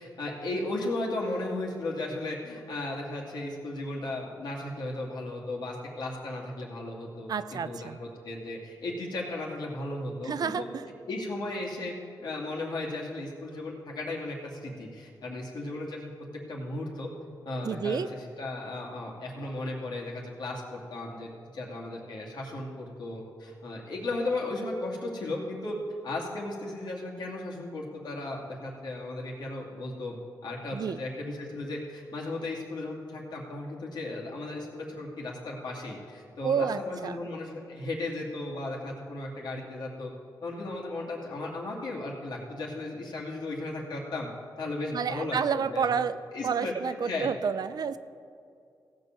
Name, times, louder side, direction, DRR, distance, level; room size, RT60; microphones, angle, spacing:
voice 1, 0.0-10.7 11.1-11.9 12.2-16.1 16.5-17.1 17.4-25.8 26.0-30.2 30.4-40.1 40.4-44.3 44.6-46.0 46.3-47.3, left 2 dB, 75° left, -3 dB, 2.4 m, -35 dB
voice 2, 7.3-8.0 10.3-10.9 17.6-18.1 30.7-31.0 36.4-37.2 44.9-46.2 46.4-48.0, right 6 dB, 60° right, 13 dB, 0.5 m, -29 dB
15.5 x 5.3 x 7.5 m, 2.4 s
cardioid pair, 65°, 7 cm